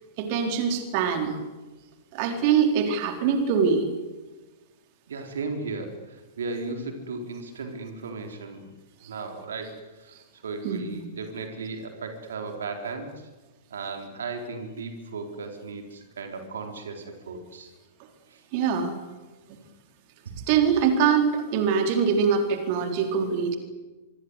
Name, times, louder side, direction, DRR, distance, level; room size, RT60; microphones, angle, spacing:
voice 1, 0.2-1.3 2.1-3.9 10.6-11.0 18.5-19.0 19.5-19.6 20.5-23.6, right 6 dB, 40° right, 5 dB, 4.0 m, -23 dB
voice 2, 5.1-8.7 9.0-13.3 13.7-17.7 18.3-18.4, right 4 dB, 65° right, 4 dB, 4.0 m, -36 dB
25.5 x 24.5 x 8.1 m, 1.2 s
figure-of-eight pair, 100°, 0 cm